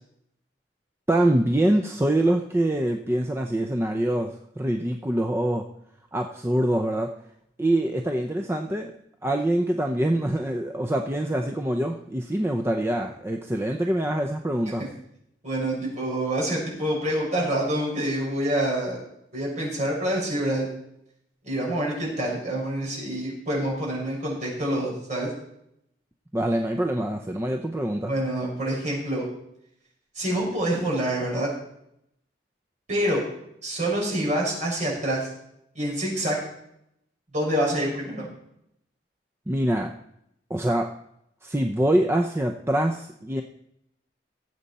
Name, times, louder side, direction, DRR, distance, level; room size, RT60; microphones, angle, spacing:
voice 1, 1.1-5.6 6.1-7.1 7.6-8.9 9.2-14.9 26.3-28.1 39.5-39.9 40.5-40.9 41.4-43.4, right 1 dB, 15° right, 4 dB, 0.6 m, -24 dB
voice 2, 15.4-19.0 19.3-20.7 21.4-25.3 28.1-29.2 30.1-31.5 32.9-33.2 33.6-35.3 35.7-36.4 37.3-38.3, right 1 dB, 45° right, -3 dB, 5.8 m, -26 dB
18.0 x 7.9 x 4.2 m, 0.76 s
head